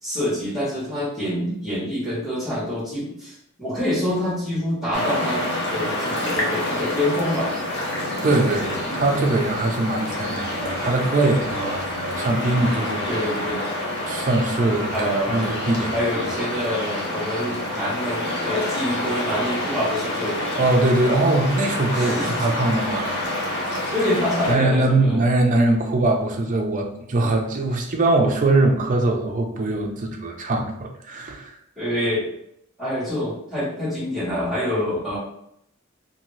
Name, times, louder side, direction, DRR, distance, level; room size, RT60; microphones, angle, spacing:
voice 1, 0.0-5.4 5.7-7.5 13.1-13.6 14.9-15.4 15.9-20.4 21.9-22.5 23.9-25.2 31.8-32.2 32.8-35.2, equal, ahead, -12 dB, 1.3 m, -26 dB
sound 1, 4.9-24.5, left 1 dB, 55° left, 0.8 m, -28 dB
voice 2, 8.2-13.0 14.1-16.3 20.6-23.2 24.5-31.6, right 2 dB, 40° right, 3 dB, 0.5 m, -22 dB
2.7 x 2.6 x 3.1 m, 0.74 s
head